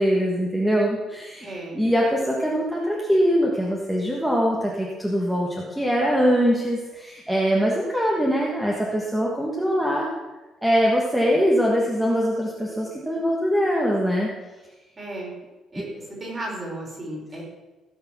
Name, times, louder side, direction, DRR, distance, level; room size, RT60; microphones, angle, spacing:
voice 1, 0.0-1.4 1.7-10.1 10.6-14.3 15.8-15.9, equal, 5° right, -2 dB, 1.5 m, -22 dB
voice 2, 1.4-1.8 15.0-15.3 15.7-17.4, right 1 dB, 25° right, -3 dB, 4.8 m, -34 dB
16.5 x 6.7 x 6.2 m, 1.2 s
cardioid pair, 150°, 0 cm